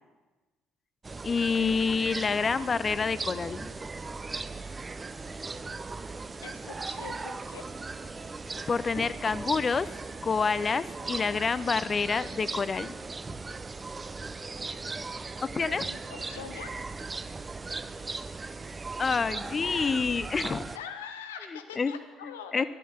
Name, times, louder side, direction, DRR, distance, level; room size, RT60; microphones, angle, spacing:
sound 1, 1.0-20.8, right 3 dB, 25° right, 0.5 m, -38 dB
voice 1, 1.2-3.7 8.7-9.9 10.2-12.9 15.5-15.8 19.0-20.7 21.5-21.9 22.5-22.6, left 5 dB, 35° left, 16 dB, 0.5 m, -28 dB
voice 2, 6.4-7.6 14.8-16.7 20.7-22.7, left 7 dB, 80° left, 7 dB, 0.8 m, -44 dB
11.0 x 6.8 x 7.9 m, 1.3 s
figure-of-eight pair, 50°, 0 cm